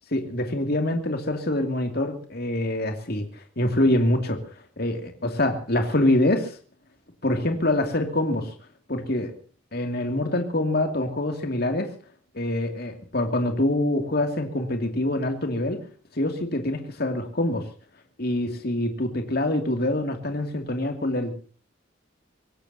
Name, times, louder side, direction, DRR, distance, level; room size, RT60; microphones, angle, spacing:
voice 1, 0.1-4.4 4.8-6.6 7.2-8.5 8.9-9.3 9.7-11.9 12.3-15.8 16.1-17.7 18.2-21.4, left 1 dB, 55° left, 5 dB, 2.6 m, -25 dB
24.5 x 18.5 x 2.8 m, 0.42 s
head